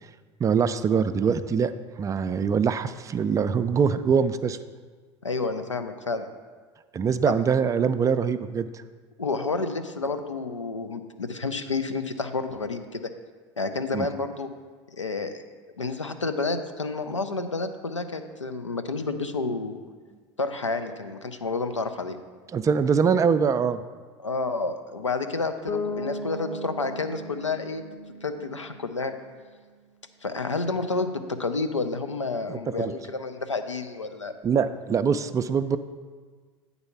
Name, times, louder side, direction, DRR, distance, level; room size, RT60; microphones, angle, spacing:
voice 1, 0.4-1.7 2.0-4.6 6.9-8.7 13.9-14.1 22.5-23.8 32.5-32.9 34.4-35.8, right 6 dB, 20° right, 12 dB, 0.3 m, -23 dB
voice 2, 5.2-6.3 9.2-13.1 13.6-14.5 14.9-15.4 15.8-19.8 20.4-22.2 24.2-27.8 28.2-29.1 30.2-34.3, left 3 dB, 90° left, 9 dB, 0.5 m, -30 dB
Bass guitar, 25.7-29.5, left 2 dB, 25° left, 0.7 m, -36 dB
8.6 x 4.1 x 5.7 m, 1.5 s
figure-of-eight pair, 75°, 15 cm